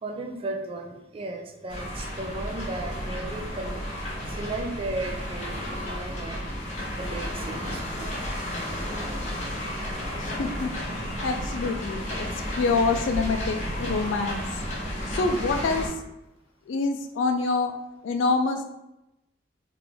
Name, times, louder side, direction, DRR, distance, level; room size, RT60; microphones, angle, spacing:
voice 1, 0.0-6.4 7.0-8.2, right 2 dB, 30° right, 2 dB, 0.4 m, -35 dB
sound 1, 1.7-15.9, equal, 40° left, 1.1 m, -32 dB
voice 2, 10.2-10.7 11.2-12.3 12.6-14.4 15.1-16.0 16.7-17.7 18.0-18.6, left 3 dB, 85° left, 6 dB, 0.3 m, -26 dB
3.3 x 2.5 x 3.4 m, 0.90 s
head